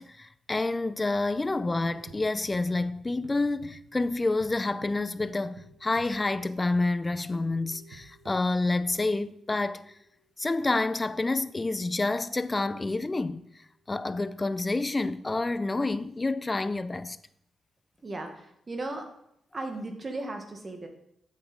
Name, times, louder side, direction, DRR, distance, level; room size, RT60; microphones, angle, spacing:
voice 1, 0.0-9.8 10.4-13.4 13.9-17.2, left 2 dB, 25° left, 0.5 m, -28 dB
sound 1, 1.3-2.9 3.2-4.5 4.8-9.1, right 4 dB, 75° right, 1.3 m, -51 dB
sound 2, 7.4-10.9 11.2-12.7 13.6-14.7, left 1 dB, 40° left, 1.8 m, -63 dB
voice 2, 18.0-19.1 19.5-20.9, right 2 dB, 35° right, 1.5 m, -36 dB
8.2 x 7.4 x 4.0 m
cardioid pair, 70°, 0 cm